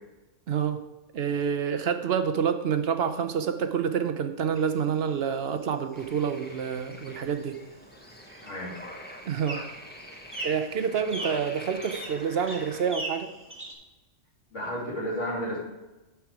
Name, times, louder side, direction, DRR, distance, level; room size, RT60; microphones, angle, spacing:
voice 1, 0.5-0.8 1.1-7.6 9.2-9.6 10.4-13.3, right 7 dB, 60° right, 9 dB, 0.8 m, -28 dB
sound 1, 4.5-13.7, right 1 dB, 10° right, 1.6 m, -42 dB
sound 2, 5.9-12.9, equal, 10° left, 1.1 m, -45 dB
voice 2, 8.4-8.7 11.2-11.3 14.5-15.6, equal, 80° left, -4 dB, 3.2 m, -32 dB
12.0 x 4.7 x 4.7 m, 1.1 s
omnidirectional pair, 1.2 m